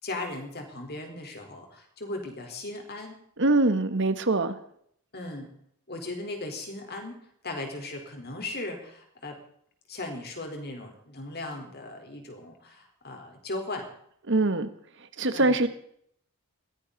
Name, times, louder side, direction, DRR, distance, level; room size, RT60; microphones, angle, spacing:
voice 1, 0.0-3.2 5.1-5.5 5.9-7.2 7.4-9.4 9.9-13.9 15.3-15.6, left 2 dB, 45° left, 3 dB, 4.3 m, -37 dB
voice 2, 3.4-4.5 14.3-14.7 15.2-15.7, right 2 dB, 55° right, 10 dB, 1.5 m, -23 dB
21.0 x 16.5 x 4.1 m, 0.66 s
head